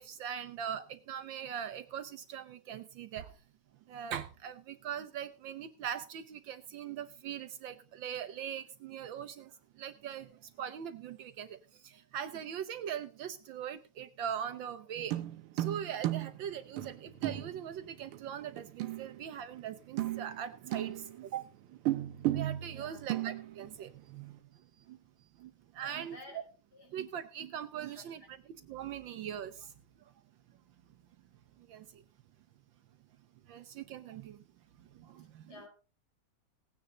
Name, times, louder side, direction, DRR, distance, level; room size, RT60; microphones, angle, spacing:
voice 1, 0.0-3.3 3.9-15.1 15.5-21.8 22.2-25.0 25.4-26.2 26.9-28.4 28.7-29.7 31.6-32.0 33.5-34.4 34.9-35.6, right 9 dB, 70° right, 11 dB, 1.4 m, -41 dB
sound 1, 15.0-19.7 19.9-21.3 21.9-23.9 24.2-24.3, right 14 dB, 85° right, 1.7 m, -35 dB
voice 2, 22.7-23.1 25.8-26.4 26.7-26.9 27.8-28.1 35.5-35.7, left 2 dB, 45° left, 1 dB, 5.5 m, -52 dB
17.5 x 9.6 x 3.8 m, 0.33 s
omnidirectional pair, 2.3 m